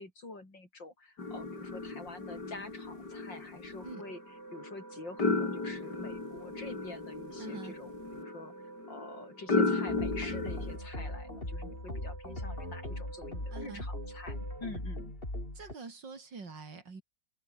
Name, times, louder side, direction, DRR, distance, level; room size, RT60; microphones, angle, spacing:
voice 1, 0.0-4.2 4.5-8.5 8.9-15.1, left 2 dB, 90° left, 7.2 m, -46 dB
sound 1, 1.2-10.8, left 3 dB, 70° left, 5.0 m, -35 dB
sound 2, 3.8-14.7, right 4 dB, 65° right, 4.0 m, -51 dB
voice 2, 7.4-7.8 13.5-13.9 15.5-17.0, right 4 dB, 80° right, 4.3 m, -45 dB
sound 3, 9.9-15.7, left 1 dB, 30° left, 8.1 m, -39 dB
omnidirectional pair, 1.9 m